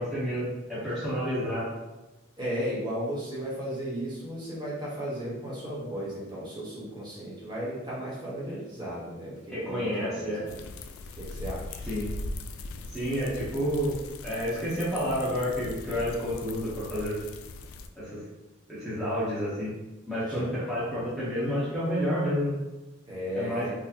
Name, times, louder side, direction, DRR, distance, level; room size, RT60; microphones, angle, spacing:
voice 1, 0.0-1.7 9.5-10.4 11.9-12.1 12.9-14.0 14.2-17.2 18.0-18.2 18.7-19.7 20.1-22.5 23.3-23.7, equal, ahead, -11 dB, 0.8 m, -30 dB
voice 2, 2.4-10.6 11.2-11.8 20.3-20.5 23.1-23.7, equal, 20° right, -7 dB, 1.0 m, -35 dB
sound 1, 10.5-17.9, left 2 dB, 90° left, 0.3 m, -40 dB
4.0 x 2.1 x 2.8 m, 1.1 s
head